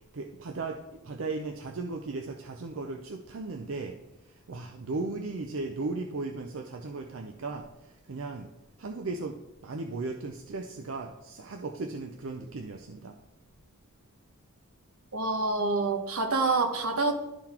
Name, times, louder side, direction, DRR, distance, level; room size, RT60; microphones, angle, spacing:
voice 1, 0.0-4.0 4.2-8.5 8.8-13.2, right 3 dB, 65° right, 4 dB, 0.5 m, -36 dB
voice 2, 15.1-17.1, right 3 dB, 80° right, 5 dB, 1.0 m, -27 dB
11.5 x 3.9 x 4.3 m, 0.96 s
head